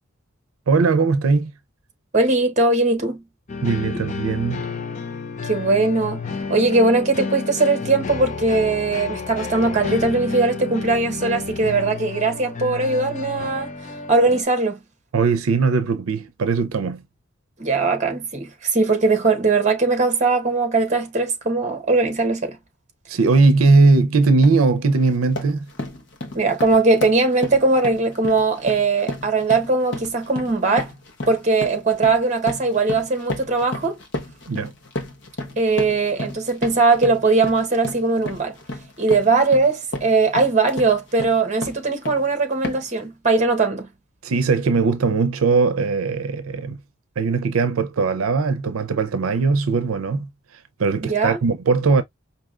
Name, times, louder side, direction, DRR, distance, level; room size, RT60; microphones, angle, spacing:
voice 1, 0.7-1.5 3.6-4.7 15.1-17.0 23.1-25.6 34.5-34.7 44.2-46.8 47.2-50.3 50.8-52.0, right 4 dB, 90° right, 0.5 m, -19 dB
voice 2, 2.1-3.2 5.4-6.2 6.5-13.7 14.1-14.8 17.6-22.6 26.3-30.9 31.3-34.0 35.6-38.5 39.0-43.9 51.0-51.4, right 3 dB, 35° right, 1.0 m, -20 dB
sound 1, 3.5-14.4, left 4 dB, 35° left, 0.6 m, -31 dB
sound 2, 23.6-23.8 24.2-24.7 25.0-42.3 42.6-43.0, left 2 dB, 55° left, 0.9 m, -33 dB
4.8 x 2.7 x 2.4 m
head